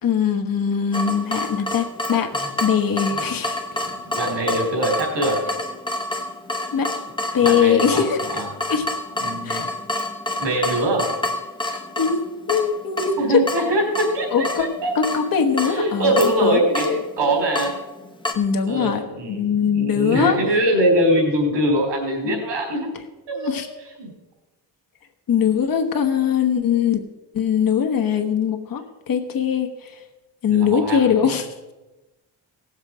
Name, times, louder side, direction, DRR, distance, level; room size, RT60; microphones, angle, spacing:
voice 1, 0.0-2.3 2.6-3.6 6.7-6.9 7.3-8.2 8.7-8.9 9.4-9.7 12.0-12.2 12.5-13.4 14.3-16.1 16.4-16.6 18.3-20.4 22.2-22.4 23.3-23.7 25.3-27.0 27.3-30.0 30.4-31.5, left 7 dB, 55° left, 5 dB, 1.3 m, -21 dB
Water tap faucet / Drip, 0.9-18.3, left 1 dB, 10° left, 0.9 m, -29 dB
voice 2, 3.8-5.4 7.4-8.5 9.2-9.7 10.4-11.1 13.2-15.0 15.6-16.9 17.2-17.7 18.7-22.9 23.3-23.5 24.0-24.1 30.5-31.4, right 1 dB, 80° right, 1 dB, 4.5 m, -22 dB
17.5 x 7.5 x 4.9 m, 1.1 s
wide cardioid pair, 165°, 42 cm